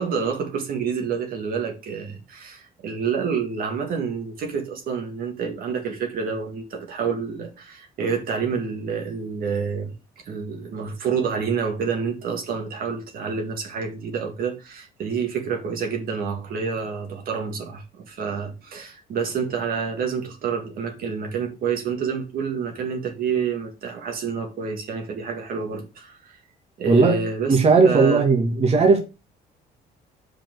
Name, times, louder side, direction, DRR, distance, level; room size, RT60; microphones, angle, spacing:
voice 1, 0.0-9.9 10.2-26.4 26.8-27.6 27.8-28.3, right 6 dB, 60° right, 2.0 m, -28 dB
voice 2, 26.9-29.0, right 4 dB, 40° right, 1.8 m, -17 dB
7.4 x 5.2 x 4.7 m
cardioid pair, 110°, 17 cm